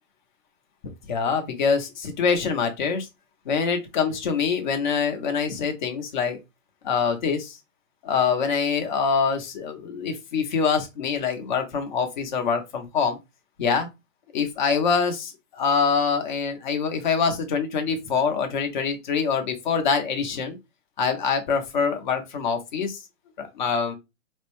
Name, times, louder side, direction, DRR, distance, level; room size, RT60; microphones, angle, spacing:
voice 1, 1.1-3.1 3.5-6.4 6.8-7.6 8.0-13.2 13.6-13.9 14.3-20.6 21.0-23.0 23.4-24.0, left 5 dB, 35° left, 0.8 m, -25 dB
4.2 x 2.1 x 3.0 m
hypercardioid pair, 150°, 40 cm